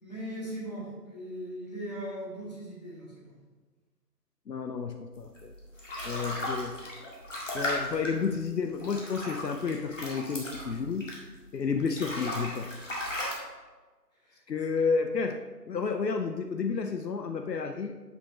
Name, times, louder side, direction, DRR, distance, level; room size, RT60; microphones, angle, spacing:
voice 1, 0.0-3.3 14.2-14.4, right 1 dB, 25° left, -6 dB, 1.7 m, -39 dB
voice 2, 4.5-5.5 6.0-6.8 7.5-11.1 11.5-12.7 14.5-15.4 15.7-18.0, left 5 dB, 75° left, 6 dB, 0.7 m, -31 dB
sound 1, 5.4-11.4 11.8-13.3, left 1 dB, 45° left, 2.1 m, -36 dB
7.9 x 6.8 x 3.1 m, 1.3 s
figure-of-eight pair, 165°, 50 cm